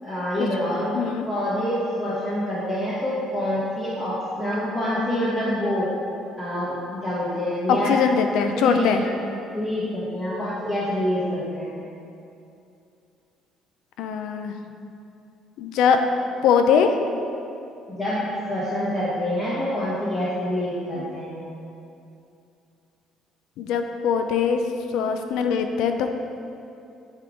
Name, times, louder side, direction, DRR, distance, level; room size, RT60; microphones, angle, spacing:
voice 1, 0.0-0.9 1.3-5.9 6.4-8.0 8.4-9.1 9.5-11.8 17.9-21.4, left 1 dB, 25° left, -11 dB, 1.5 m, -26 dB
voice 2, 0.9-1.3 7.7-9.0 14.0-14.6 15.6-16.0 16.4-16.9 21.0-21.1 23.6-24.6 24.9-26.1, left 6 dB, 80° left, 6 dB, 0.4 m, -21 dB
9.8 x 3.7 x 3.7 m, 2.6 s
cardioid pair, 135°, 0 cm